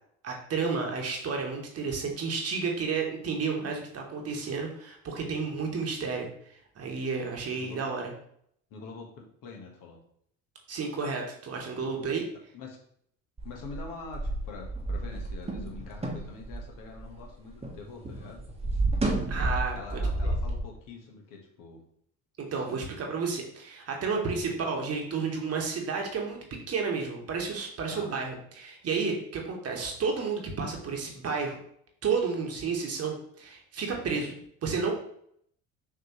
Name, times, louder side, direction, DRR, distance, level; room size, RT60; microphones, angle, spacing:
voice 1, 0.2-8.1 10.7-12.2 19.3-20.3 22.4-31.6 32.0-34.9, right 5 dB, 40° right, 1 dB, 1.3 m, -31 dB
voice 2, 8.7-10.0 12.5-12.8 13.4-18.4 19.7-21.8 22.5-22.6 27.9-28.1, left 4 dB, 60° left, 1 dB, 1.3 m, -45 dB
sound 1, 13.4-17.8 18.0-20.6, right 2 dB, 15° right, 1.1 m, -31 dB
5.7 x 3.0 x 3.0 m, 0.68 s
hypercardioid pair, 70°, 37 cm